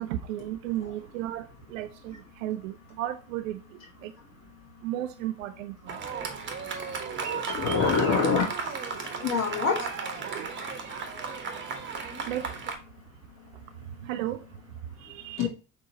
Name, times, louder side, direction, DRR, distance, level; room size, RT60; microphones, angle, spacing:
voice 1, 0.0-3.6 4.0-4.1 4.8-5.7 10.3-10.5 10.9-11.0 12.3-12.5 14.0-14.4 15.0-15.5, right 13 dB, 75° right, 0.6 m, -34 dB
Fireworks, 5.9-12.7, right 5 dB, 30° right, 1.2 m, -35 dB
voice 2, 7.3-8.4 9.2-9.8 15.4-15.5, left 5 dB, 40° left, 1.2 m, -25 dB
6.3 x 2.9 x 2.8 m
hypercardioid pair, 75°, 40 cm